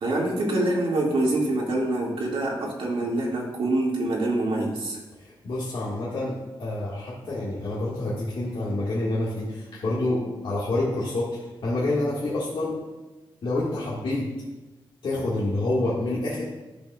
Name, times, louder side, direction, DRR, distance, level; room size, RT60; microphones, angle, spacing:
voice 1, 0.0-5.0, right 2 dB, 75° right, -2 dB, 2.0 m, -25 dB
voice 2, 5.2-12.8 13.4-14.3 15.0-16.4, left 2 dB, 70° left, -7 dB, 1.7 m, -28 dB
12.0 x 6.8 x 2.3 m, 1.1 s
cardioid pair, 90°, 9 cm